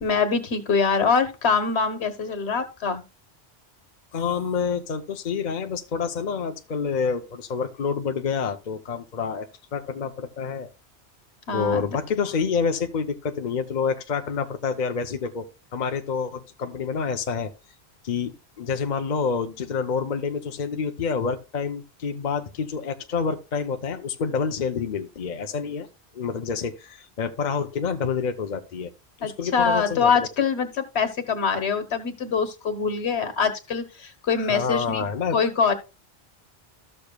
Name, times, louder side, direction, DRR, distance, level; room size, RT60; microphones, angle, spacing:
voice 1, 0.0-3.0 11.5-11.8 29.2-35.0 35.3-35.7, left 5 dB, 85° left, 10 dB, 1.5 m, -24 dB
voice 2, 4.1-10.7 11.5-17.5 18.0-25.9 26.1-28.9 29.2-30.1 34.5-35.4, left 5 dB, 50° left, 6 dB, 0.8 m, -28 dB
13.5 x 6.9 x 2.2 m, 0.28 s
omnidirectional pair, 1.1 m